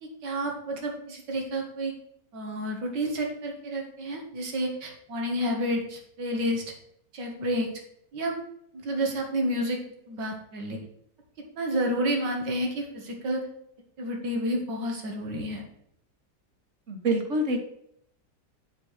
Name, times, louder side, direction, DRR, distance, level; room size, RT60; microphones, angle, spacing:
voice 1, 0.0-1.9 2.3-6.6 7.1-7.7 8.1-8.4 8.7-9.8 10.1-10.8 11.6-13.4 14.0-15.6, equal, 85° right, 1 dB, 2.3 m, -30 dB
voice 2, 16.9-17.6, right 1 dB, 45° right, 4 dB, 1.7 m, -26 dB
7.4 x 5.0 x 7.3 m, 0.73 s
omnidirectional pair, 1.8 m